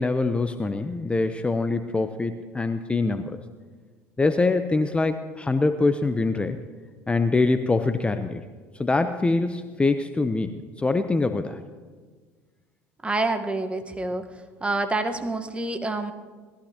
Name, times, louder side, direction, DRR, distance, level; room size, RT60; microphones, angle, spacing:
voice 1, 0.0-3.4 4.2-6.6 7.1-8.4 8.8-11.6, left 3 dB, 15° left, 9 dB, 0.7 m, -24 dB
voice 2, 13.0-14.2 14.6-16.1, right 2 dB, 15° right, 7 dB, 1.2 m, -27 dB
19.5 x 14.0 x 2.9 m, 1.5 s
hypercardioid pair, 80°, 7 cm